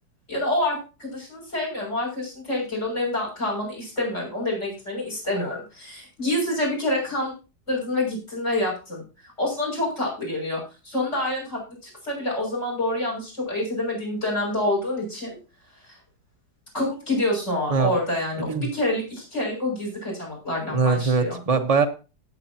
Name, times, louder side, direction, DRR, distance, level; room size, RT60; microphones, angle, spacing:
voice 1, 0.3-7.3 7.7-9.0 9.4-15.4 15.8-16.0 16.7-21.4, left 1 dB, 40° left, -1 dB, 7.1 m, -27 dB
voice 2, 20.7-21.8, right 5 dB, 25° right, 6 dB, 1.1 m, -21 dB
17.5 x 8.5 x 2.9 m, 0.33 s
omnidirectional pair, 1.8 m